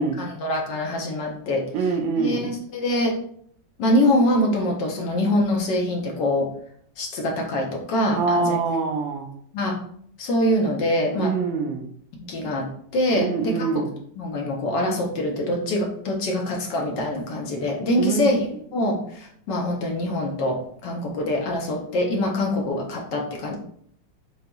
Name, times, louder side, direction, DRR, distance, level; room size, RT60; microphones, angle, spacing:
voice 1, 0.0-1.9 2.2-3.1 3.8-6.5 7.0-8.6 9.5-9.8 10.2-11.3 12.2-12.6 12.9-13.9 14.2-23.6, left 1 dB, 65° left, 0 dB, 1.4 m, -24 dB
voice 2, 1.7-2.5 8.2-9.3 11.2-11.9 13.2-13.9 18.0-18.3, right 4 dB, 80° right, 4 dB, 1.4 m, -24 dB
6.5 x 2.8 x 2.3 m, 0.62 s
omnidirectional pair, 2.2 m